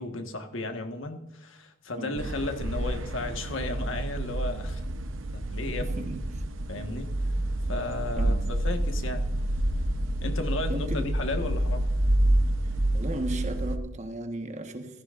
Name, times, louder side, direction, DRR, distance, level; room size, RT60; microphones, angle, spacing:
voice 1, 0.0-4.8 5.3-6.1 6.7-7.1 7.7-9.2 10.2-11.9, left 2 dB, 80° left, 1.6 m, -34 dB
voice 2, 2.0-2.3 5.8-6.4 8.2-8.6 10.7-11.2 12.9-15.0, right 1 dB, 35° right, 1.4 m, -36 dB
sound 1, 2.2-13.8, right 1 dB, 80° right, 0.9 m, -28 dB
15.5 x 14.5 x 2.6 m
head